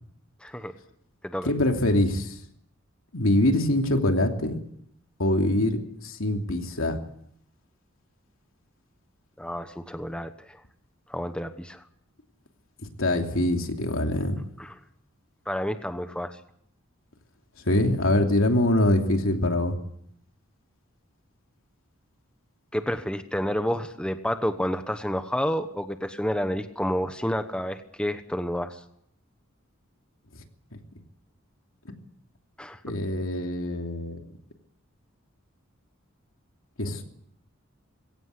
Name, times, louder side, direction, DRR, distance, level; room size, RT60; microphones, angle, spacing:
voice 1, 0.4-0.7 1.2-1.5 9.4-10.6 11.1-11.8 14.6-14.7 15.5-16.4 22.7-28.8 32.6-32.8, equal, 5° left, 8 dB, 1.1 m, -29 dB
voice 2, 1.4-2.4 3.1-4.5 5.2-7.0 13.0-14.4 17.7-19.7 30.3-30.4 32.8-34.2 36.8-37.0, left 1 dB, 80° left, 4 dB, 2.9 m, -24 dB
22.0 x 17.5 x 8.3 m, 0.71 s
head